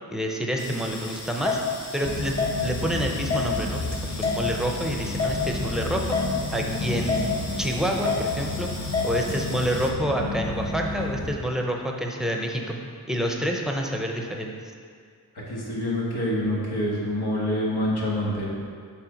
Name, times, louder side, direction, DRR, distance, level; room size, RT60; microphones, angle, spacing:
voice 1, 0.1-1.6 1.9-2.4 2.6-6.2 6.5-7.3 7.6-8.7 9.0-12.8 13.1-14.7, right 1 dB, ahead, 1 dB, 0.7 m, -28 dB
sound 1, 0.6-9.9, left 4 dB, 40° left, 1.0 m, -31 dB
sound 2, 2.0-11.4, left 3 dB, 60° left, 0.9 m, -32 dB
voice 2, 15.3-18.5, left 1 dB, 80° left, -6 dB, 1.7 m, -26 dB
7.4 x 3.8 x 5.1 m, 2.1 s
wide cardioid pair, 90°, 38 cm